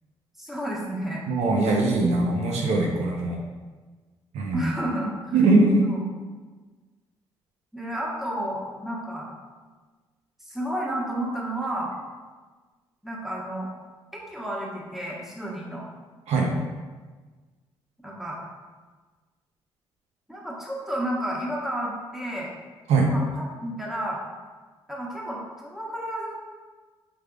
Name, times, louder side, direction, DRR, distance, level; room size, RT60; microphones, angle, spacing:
voice 1, 0.4-1.2 4.5-5.4 5.8-6.0 7.7-9.3 10.4-11.9 13.0-13.7 14.1-15.9 18.0-18.4 20.3-22.5 23.0-24.2 24.9-26.3, right 1 dB, ahead, -4 dB, 1.2 m, -31 dB
voice 2, 1.3-3.4 4.3-4.7 5.3-5.9 16.3-16.5 22.9-23.1, right 3 dB, 75° right, 0 dB, 0.6 m, -21 dB
5.0 x 3.3 x 2.3 m, 1.4 s
supercardioid pair, 55°, 11 cm